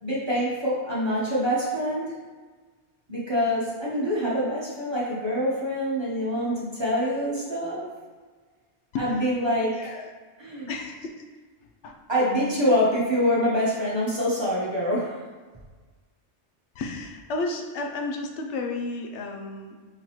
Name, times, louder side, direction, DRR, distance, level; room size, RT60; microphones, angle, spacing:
voice 1, 0.0-2.2 3.1-7.9 9.0-10.0 10.4-10.7 12.1-15.2, equal, 25° right, -7 dB, 1.1 m, -25 dB
voice 2, 10.7-11.2 11.8-11.9 16.8-19.8, left 3 dB, 80° left, 2 dB, 0.9 m, -32 dB
4.7 x 3.7 x 3.0 m, 1.4 s
omnidirectional pair, 1.2 m